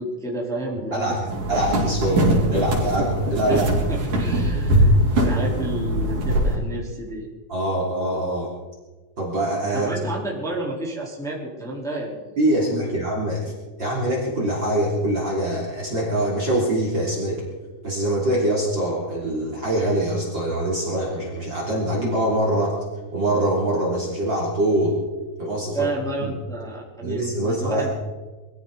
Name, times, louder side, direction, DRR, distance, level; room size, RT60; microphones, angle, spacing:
voice 1, 0.0-1.8 2.5-2.6 3.5-7.3 9.7-12.2 12.6-13.0 25.7-27.9, right 1 dB, ahead, -4 dB, 3.5 m, -31 dB
voice 2, 0.9-3.7 7.5-8.5 9.2-9.9 12.4-13.5 13.8-17.5 17.8-22.8 23.1-25.0 25.4-25.9 26.2-26.3 27.0-27.9, right 1 dB, 30° right, -3 dB, 3.6 m, -24 dB
sound 1, 1.3-6.6, right 1 dB, 60° right, 5.2 m, -21 dB
23.0 x 15.0 x 4.1 m, 1.3 s
omnidirectional pair, 4.2 m